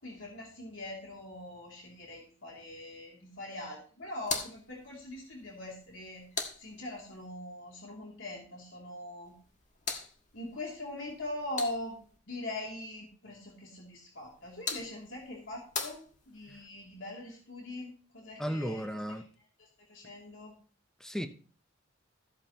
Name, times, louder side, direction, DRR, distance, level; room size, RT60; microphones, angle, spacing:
voice 1, 0.0-6.2 6.6-9.3 10.3-12.0 12.3-19.2 19.6-20.5, left 1 dB, 75° left, -2 dB, 3.0 m, -42 dB
sound 1, 4.2-7.3 9.2-12.2 14.2-16.6, left 4 dB, 35° left, 1.6 m, -42 dB
voice 2, 18.4-19.2 21.0-21.3, equal, ahead, 7 dB, 0.8 m, -34 dB
14.5 x 8.5 x 3.0 m, 0.41 s
head